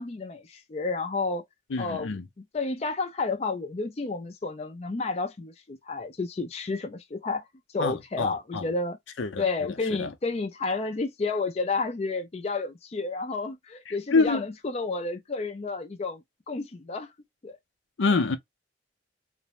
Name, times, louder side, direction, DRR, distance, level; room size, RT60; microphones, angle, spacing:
voice 1, 0.0-1.4 1.8-2.2 2.5-7.4 7.7-9.0 9.4-17.1 17.4-17.6, left 3 dB, 35° left, 0.4 m, -31 dB
voice 2, 1.7-2.2 7.8-8.7 9.2-9.4 10.0-10.1 13.9-14.4 18.0-18.4, left 4 dB, 90° left, 0.6 m, -26 dB
2.5 x 2.1 x 2.9 m
head